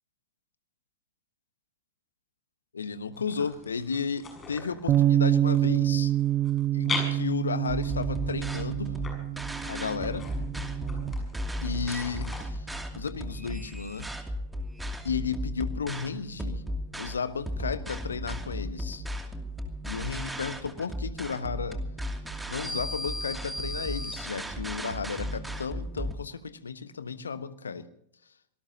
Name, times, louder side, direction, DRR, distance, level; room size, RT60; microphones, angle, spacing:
voice 1, 2.7-6.1 6.7-9.0 9.7-10.2 11.6-12.7 12.9-14.1 15.0-16.6 17.0-19.0 19.8-21.8 22.5-27.9, left 5 dB, 70° left, 13 dB, 1.3 m, -33 dB
sound 1, 3.1-12.4, left 4 dB, 20° left, 6.7 m, -41 dB
Bass guitar, 4.9-11.1, right 12 dB, 30° right, 0.8 m, -27 dB
sound 2, 7.7-26.1, equal, 5° right, 2.6 m, -35 dB
26.0 x 19.0 x 2.8 m, 0.72 s
figure-of-eight pair, 90°, 0 cm